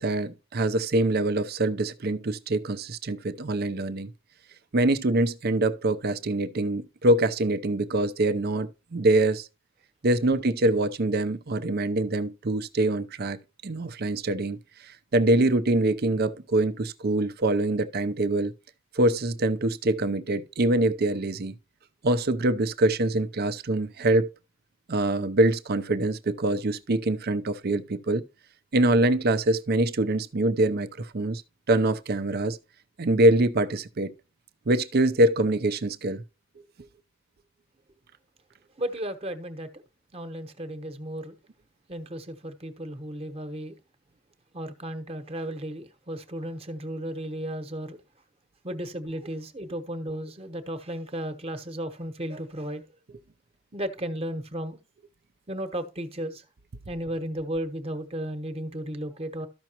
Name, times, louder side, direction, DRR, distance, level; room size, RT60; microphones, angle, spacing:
voice 1, 0.0-4.1 4.7-9.5 10.0-13.4 13.6-14.6 15.1-18.5 19.0-21.5 22.0-24.3 24.9-28.2 28.7-31.4 31.7-32.6 33.0-34.1 34.7-36.2, right 1 dB, 50° right, 0.6 m, -24 dB
voice 2, 38.8-39.8 40.1-41.3 41.9-43.7 44.5-48.0 48.6-52.8 53.7-54.8 55.5-56.4 56.8-59.5, right 1 dB, 30° right, 1.1 m, -34 dB
13.0 x 5.9 x 2.9 m
head